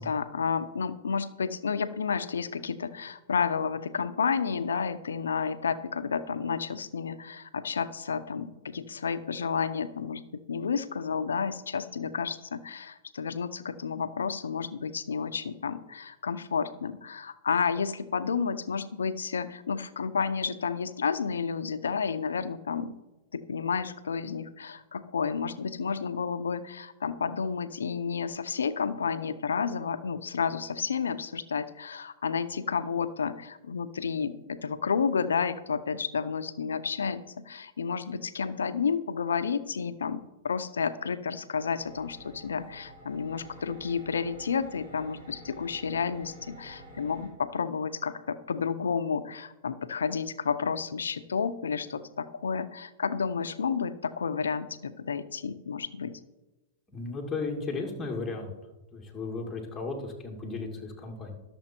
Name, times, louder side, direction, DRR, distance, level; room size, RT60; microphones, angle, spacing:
voice 1, 0.0-23.0 23.3-56.1, left 6 dB, 90° left, 12 dB, 0.7 m, -31 dB
sound 1, 41.8-47.3, right 1 dB, 50° right, 3.8 m, -49 dB
voice 2, 56.9-58.5 58.9-61.4, left 3 dB, 15° left, 1 dB, 2.2 m, -35 dB
12.0 x 7.1 x 4.4 m, 1.0 s
hypercardioid pair, 120°, 0 cm